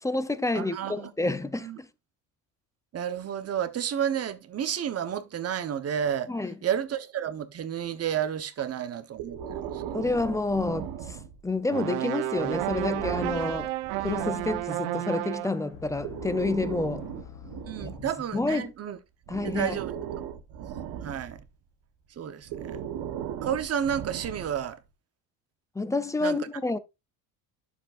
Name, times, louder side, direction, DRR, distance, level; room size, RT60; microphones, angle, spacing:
voice 1, 0.0-1.9 6.3-6.5 9.9-11.2 11.4-13.7 14.0-17.1 17.8-18.7 19.3-19.8 25.7-26.8, left 2 dB, 10° left, 0.5 m, -29 dB
voice 2, 0.5-1.1 1.6-1.8 2.9-6.3 6.6-9.8 17.7-19.0 19.5-19.9 21.0-21.4 22.2-22.8 23.4-24.8 26.2-26.4, right 9 dB, 35° right, 1.0 m, -31 dB
Breathing, 9.2-11.6 12.4-14.7 15.8-18.7 19.3-21.5 22.4-24.7, right 9 dB, 60° right, 1.3 m, -37 dB
sound 1, 11.7-15.7, right 16 dB, 90° right, 0.9 m, -31 dB
sound 2, 15.7-18.6, left 8 dB, 85° left, 1.1 m, -46 dB
11.5 x 7.1 x 2.5 m
cardioid pair, 130°, 42 cm